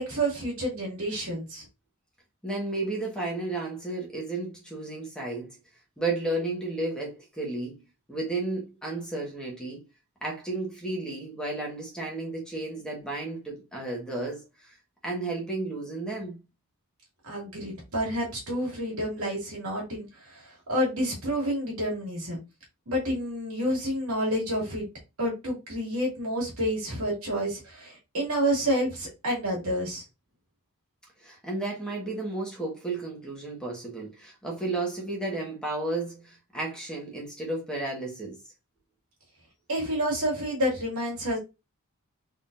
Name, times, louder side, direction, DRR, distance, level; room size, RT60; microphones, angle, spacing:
voice 1, 0.0-1.6 17.2-22.4 22.9-24.9 25.2-30.0 39.7-41.4, equal, 75° right, 2.2 m, -29 dB
voice 2, 2.4-5.5 6.0-7.8 8.1-9.8 10.2-14.8 15.0-16.4 31.2-38.4, right 2 dB, 5° left, 1.4 m, -33 dB
3.9 x 3.8 x 2.5 m
head